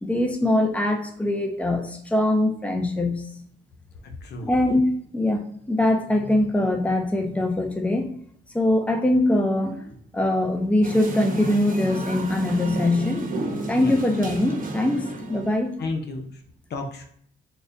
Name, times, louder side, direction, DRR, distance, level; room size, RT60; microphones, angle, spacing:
voice 1, 0.0-3.3 4.4-8.1 8.5-13.3 13.7-15.8, left 1 dB, 5° left, 4 dB, 0.7 m, -23 dB
voice 2, 4.0-4.5 13.8-14.0 15.8-16.4 16.7-17.1, left 3 dB, 55° left, 4 dB, 0.7 m, -32 dB
sound 1, 10.8-15.7, right 2 dB, 45° right, 1.0 m, -31 dB
3.9 x 2.2 x 3.8 m, 0.62 s
cardioid pair, 90°, 20 cm